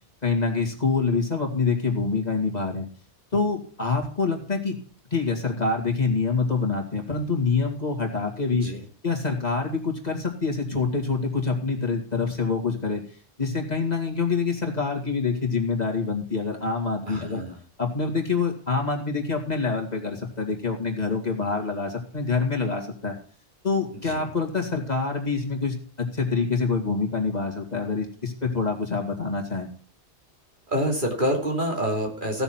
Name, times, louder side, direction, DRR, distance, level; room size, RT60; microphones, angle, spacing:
voice 1, 0.2-2.9 3.3-4.8 5.1-8.7 9.0-13.0 13.4-17.4 17.8-23.1 23.6-29.7, left 4 dB, 40° left, 1 dB, 2.6 m, -26 dB
voice 2, 8.5-8.8 17.1-17.6 24.0-24.2 30.7-32.4, equal, 45° right, 0 dB, 3.2 m, -27 dB
16.0 x 6.9 x 5.9 m, 0.41 s
omnidirectional pair, 1.1 m